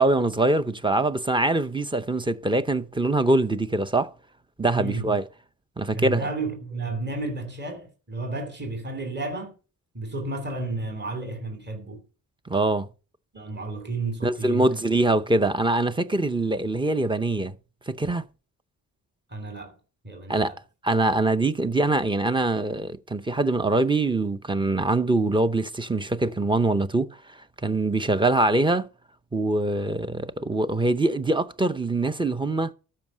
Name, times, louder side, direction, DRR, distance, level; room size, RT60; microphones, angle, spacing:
voice 1, 0.0-4.1 4.6-5.2 5.8-6.2 12.5-12.9 14.2-17.5 17.9-18.2 20.3-20.5 20.8-27.2 27.6-28.9 29.3-32.7, right 2 dB, 15° right, 0.7 m, -23 dB
voice 2, 4.7-5.2 5.9-9.5 9.9-12.0 13.3-14.7 19.3-19.8 20.0-20.6, right 2 dB, 30° right, 2.9 m, -32 dB
13.0 x 5.6 x 6.2 m
cardioid pair, 110°, 37 cm